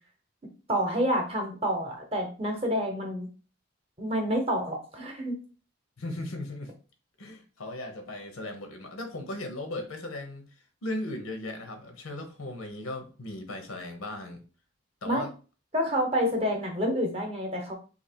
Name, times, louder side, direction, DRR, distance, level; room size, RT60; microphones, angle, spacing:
voice 1, 0.7-3.3 4.0-5.4 15.0-15.2 15.7-17.7, equal, 30° right, 0.8 m, -28 dB
voice 2, 6.0-6.8 7.2-10.5 10.8-14.4 15.0-15.3, left 1 dB, 85° left, 0.9 m, -37 dB
2.9 x 2.7 x 4.4 m
head